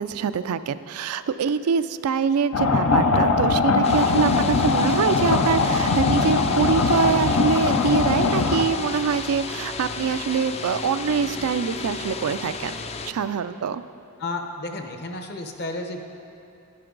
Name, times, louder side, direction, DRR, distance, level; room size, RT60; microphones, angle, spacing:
voice 1, 0.0-12.8 13.1-13.8, right 6 dB, 85° right, 12 dB, 0.4 m, -24 dB
sound 1, 2.5-8.7, left 4 dB, 75° left, 0.7 m, -21 dB
sound 2, 3.8-13.1, left 4 dB, 30° left, 0.4 m, -33 dB
voice 2, 14.2-16.0, left 2 dB, 50° left, 4 dB, 0.9 m, -32 dB
12.5 x 10.5 x 3.9 m, 2.7 s
head